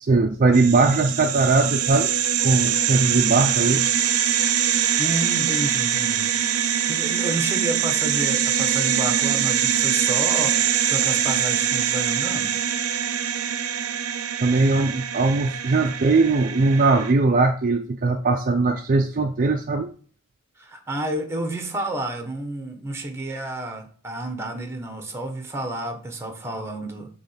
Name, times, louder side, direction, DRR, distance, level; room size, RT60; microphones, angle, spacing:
voice 1, 0.0-2.1 2.4-3.9 14.4-19.9, right 3 dB, 40° right, 4 dB, 0.5 m, -20 dB
sound 1, 0.5-17.1, right 9 dB, 85° right, 0.6 m, -23 dB
voice 2, 5.0-6.3 6.6-12.5 20.6-27.1, right 1 dB, 10° right, 5 dB, 1.2 m, -30 dB
7.4 x 3.1 x 5.6 m, 0.42 s
head